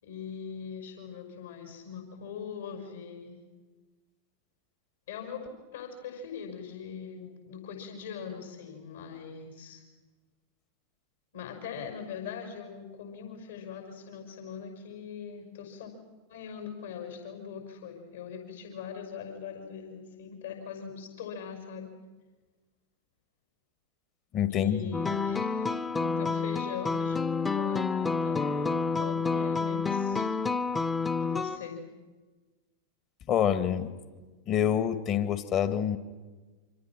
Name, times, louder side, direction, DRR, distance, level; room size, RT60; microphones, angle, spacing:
voice 1, 0.0-3.4 5.1-9.8 11.3-15.9 16.3-21.9 24.5-25.7 26.0-27.2 27.5-30.2 31.2-31.8, left 7 dB, 60° left, 5 dB, 5.7 m, -41 dB
voice 2, 24.3-24.9 33.3-33.9 34.5-36.0, left 9 dB, 35° left, 11 dB, 1.9 m, -26 dB
sound 1, 24.9-31.6, left 4 dB, 10° left, 1.1 m, -29 dB
28.5 x 26.0 x 6.2 m, 1.3 s
figure-of-eight pair, 90°, 0 cm